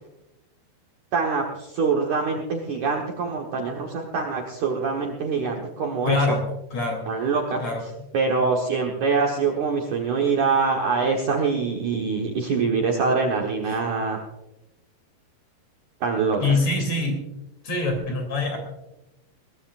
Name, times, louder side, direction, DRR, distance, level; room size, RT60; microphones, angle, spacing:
voice 1, 1.1-6.4 7.1-7.6 8.1-14.2 16.0-16.6, right 4 dB, 60° right, 0 dB, 2.1 m, -24 dB
voice 2, 6.1-6.4 6.7-7.1 7.6-7.8 13.7-13.8 16.4-17.2 17.6-18.6, left 3 dB, 40° left, 3 dB, 3.8 m, -24 dB
22.5 x 18.0 x 2.5 m, 0.94 s
omnidirectional pair, 5.1 m